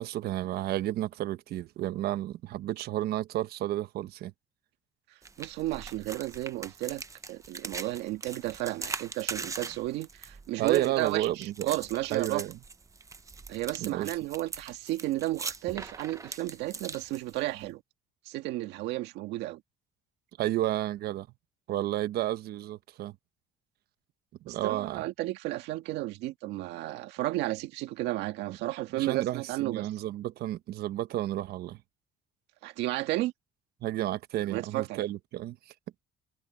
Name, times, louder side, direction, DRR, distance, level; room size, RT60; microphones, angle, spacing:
voice 1, 0.0-4.3 10.6-11.7 12.1-12.5 13.8-14.1 20.4-21.3 21.7-23.1 24.4-25.0 28.9-31.8 33.8-35.7, right 14 dB, 65° right, 1.2 m, -31 dB
sound 1, 5.2-17.7, right 4 dB, 20° right, 0.9 m, -41 dB
voice 2, 5.4-7.0 7.3-12.4 13.5-17.8 18.3-19.6 24.5-29.9 32.6-33.3 34.3-35.1, right 17 dB, 85° right, 1.8 m, -33 dB
cardioid pair, 125°, 17 cm